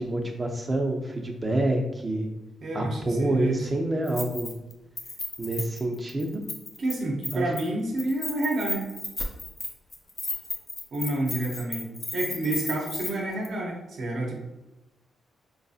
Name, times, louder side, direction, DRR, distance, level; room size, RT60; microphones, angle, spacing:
voice 1, 0.0-2.3 2.7-4.5 5.4-6.4 7.3-7.4, right 1 dB, 20° right, 3 dB, 0.5 m, -27 dB
voice 2, 2.6-3.6 6.8-8.9 10.9-14.4, right 2 dB, 60° right, 0 dB, 0.7 m, -29 dB
Keys jangling, 4.1-4.7 5.0-6.9 7.2-7.7 8.0-13.1 13.4-13.5, left 2 dB, 25° left, 0.6 m, -34 dB
4.5 x 2.6 x 2.4 m, 0.96 s
cardioid pair, 120°, 0 cm